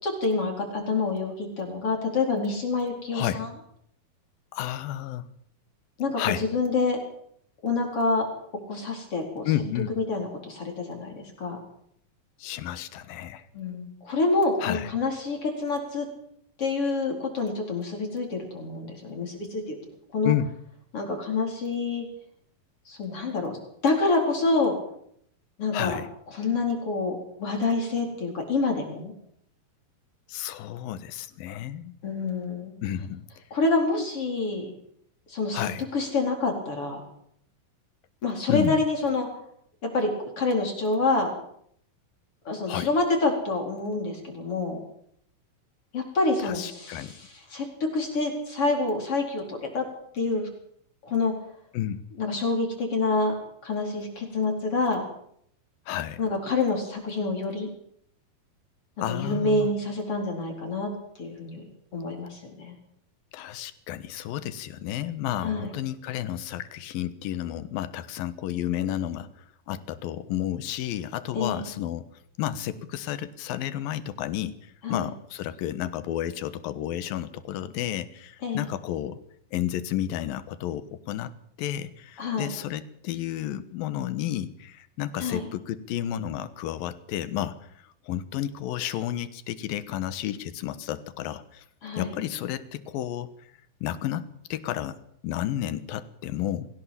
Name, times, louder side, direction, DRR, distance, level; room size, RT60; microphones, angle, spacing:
voice 1, 0.0-3.5 6.0-7.0 7.6-8.3 8.7-9.5 10.0-11.6 13.5-16.1 16.6-19.8 20.1-20.4 20.9-22.1 22.9-23.6 23.8-24.8 25.6-26.0 26.3-29.1 32.0-32.8 33.5-34.7 35.3-35.7 35.9-37.0 38.2-39.3 39.8-41.3 42.4-44.8 45.9-49.9 50.1-50.5 51.0-51.3 52.2-53.3 53.6-55.0 56.2-57.7 59.1-60.9 61.2-61.6 61.9-62.8 65.4-65.7 71.3-71.7 74.8-75.1 78.4-78.7 82.2-82.5 85.2-85.4 91.8-92.1, left 3 dB, 35° left, 2 dB, 5.1 m, -27 dB
voice 2, 3.1-3.4 4.5-5.3 6.2-6.5 9.5-10.0 12.4-13.5 14.6-14.9 20.2-20.5 25.7-26.1 30.3-32.0 32.8-33.2 35.5-35.9 38.5-38.8 42.7-42.9 46.4-47.2 51.7-52.0 55.9-56.2 59.0-59.7 63.3-69.3 69.7-72.1 72.4-79.2 79.5-81.3 81.6-87.6 88.0-91.6 92.0-93.5 93.8-95.0 95.2-96.7, left 11 dB, 75° left, 13 dB, 2.9 m, -31 dB
23.5 x 16.5 x 7.3 m, 0.70 s
omnidirectional pair, 4.3 m